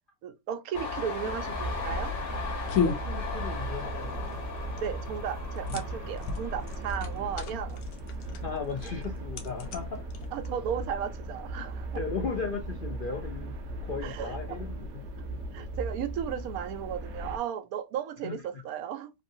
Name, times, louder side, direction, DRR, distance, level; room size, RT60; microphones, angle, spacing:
voice 1, 0.2-2.1 4.7-7.8 10.3-12.0 14.0-14.6 15.5-19.1, right 9 dB, 90° right, 1.1 m, -35 dB
Train, 0.7-8.2 8.5-9.4, left 4 dB, 45° left, 1.0 m, -38 dB
sound 1, 1.2-10.7, left 5 dB, 85° left, 1.1 m, -36 dB
sound 2, 1.4-17.4, right 1 dB, 60° right, 0.9 m, -38 dB
voice 2, 2.8-4.4 8.4-10.0 11.9-15.7 18.2-18.4, left 5 dB, 65° left, 0.5 m, -36 dB
3.1 x 2.6 x 2.6 m
omnidirectional pair, 1.5 m